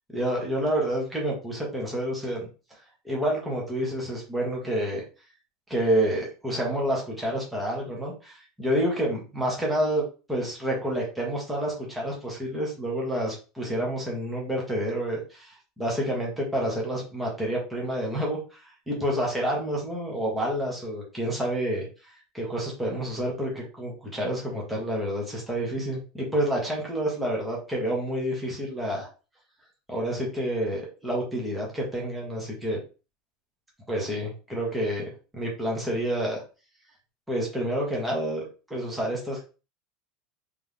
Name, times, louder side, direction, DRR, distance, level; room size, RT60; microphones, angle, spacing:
voice 1, 0.1-2.4 3.0-5.0 5.7-10.0 10.3-29.1 29.9-32.8 33.9-36.4 37.3-38.4 38.7-39.4, right 1 dB, 5° right, -3 dB, 1.4 m, -29 dB
3.6 x 3.4 x 3.5 m, 0.33 s
supercardioid pair, 150°, 0 cm